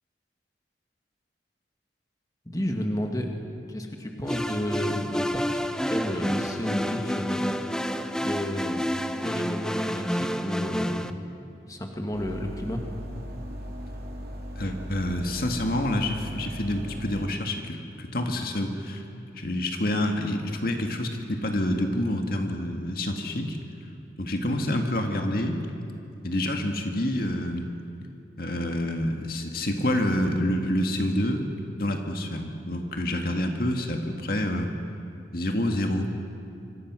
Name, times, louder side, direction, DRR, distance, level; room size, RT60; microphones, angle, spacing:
voice 1, 2.5-3.3 3.7-7.5 8.2-8.8 9.1-11.1 11.7-12.8, equal, 20° left, 2 dB, 2.1 m, -32 dB
sound 1, 4.3-11.1, equal, 5° left, 0.7 m, -29 dB
sound 2, 12.1-17.3, equal, 60° right, 3.6 m, -38 dB
voice 2, 14.6-19.0 19.3-23.6 24.2-25.6 26.2-27.7 28.4-31.4 31.8-34.7 35.3-36.1, left 1 dB, 55° left, 3 dB, 2.0 m, -27 dB
26.0 x 25.0 x 6.3 m, 2.7 s
head